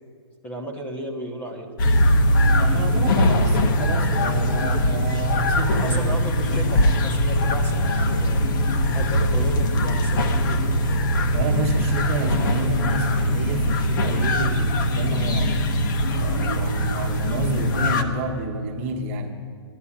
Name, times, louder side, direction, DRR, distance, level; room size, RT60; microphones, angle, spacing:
voice 1, 0.4-1.7 5.8-8.5 8.9-10.9, right 1 dB, 10° left, 1 dB, 1.0 m, -34 dB
sound 1, 1.8-18.0, equal, 45° left, 1.2 m, -21 dB
voice 2, 2.6-6.4 11.3-15.6 16.2-19.4, right 2 dB, 30° right, 2 dB, 1.4 m, -29 dB
14.0 x 11.5 x 8.6 m, 2.2 s
hypercardioid pair, 165°, 15 cm